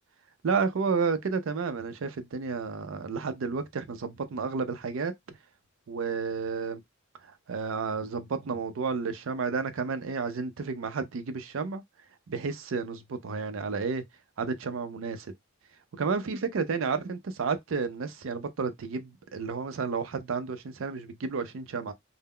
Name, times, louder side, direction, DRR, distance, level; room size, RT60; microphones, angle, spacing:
voice 1, 0.4-5.1 5.9-6.8 7.5-11.8 12.3-14.0 14.4-15.3 15.9-21.9, right 5 dB, 70° right, 0.4 m, -31 dB
2.1 x 2.0 x 3.5 m
head